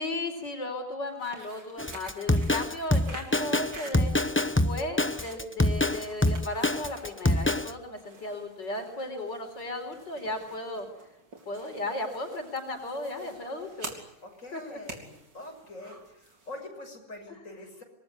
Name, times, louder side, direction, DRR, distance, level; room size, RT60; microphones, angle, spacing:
voice 1, 0.0-4.1 4.6-10.9 11.5-14.0 14.5-14.8, left 2 dB, 85° left, 4 dB, 4.9 m, -35 dB
sound 1, 1.1-16.7, right 3 dB, 90° right, 4.3 m, -49 dB
Drum kit, 1.8-7.7, left 1 dB, 10° left, 0.6 m, -25 dB
voice 2, 14.2-17.8, left 2 dB, 45° left, 3 dB, 6.6 m, -44 dB
26.0 x 21.5 x 9.9 m, 0.81 s
omnidirectional pair, 1.9 m